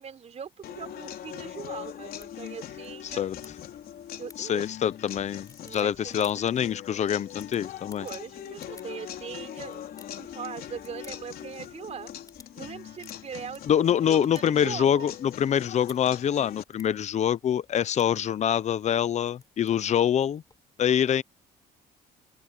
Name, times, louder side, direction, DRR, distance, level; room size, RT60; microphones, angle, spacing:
voice 1, 0.0-3.3 4.2-4.7 5.6-6.2 8.0-9.8 10.1-12.1 12.5-13.6 14.0-15.1 20.9-21.2, right 7 dB, 40° right, 4.0 m, -40 dB
sound 1, 0.6-16.6, left 10 dB, 60° left, 3.8 m, -42 dB
sound 2, 1.2-20.6, left 3 dB, 20° left, 6.9 m, -58 dB
voice 2, 3.0-3.4 4.4-8.1 13.7-20.4 20.8-21.2, left 9 dB, 45° left, 0.8 m, -25 dB
open air
cardioid pair, 110°, 17 cm